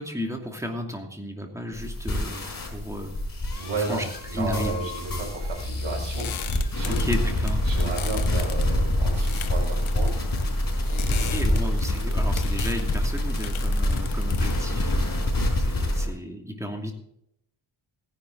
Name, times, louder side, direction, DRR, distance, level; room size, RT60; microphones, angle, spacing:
voice 1, 0.0-3.2 3.8-4.0 4.3-4.7 6.8-7.6 11.1-16.9, left 1 dB, 5° right, 2 dB, 2.7 m, -34 dB
sound 1, 1.7-16.1, left 1 dB, 45° left, 5.2 m, -26 dB
voice 2, 3.5-7.0 7.6-10.2 10.8-11.7, right 3 dB, 80° right, -6 dB, 5.6 m, -33 dB
sound 2, 5.3-15.7, left 9 dB, 80° left, 1.1 m, -39 dB
17.0 x 11.0 x 4.1 m, 0.75 s
cardioid pair, 85°, 48 cm